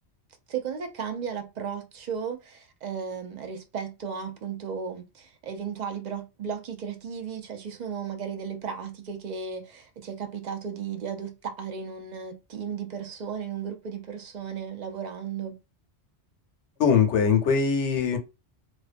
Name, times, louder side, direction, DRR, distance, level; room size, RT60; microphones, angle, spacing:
voice 1, 0.5-15.6, right 7 dB, 50° right, 0.5 m, -35 dB
voice 2, 16.8-18.2, left 6 dB, 85° left, 1.0 m, -21 dB
2.5 x 2.2 x 2.5 m
omnidirectional pair, 1.2 m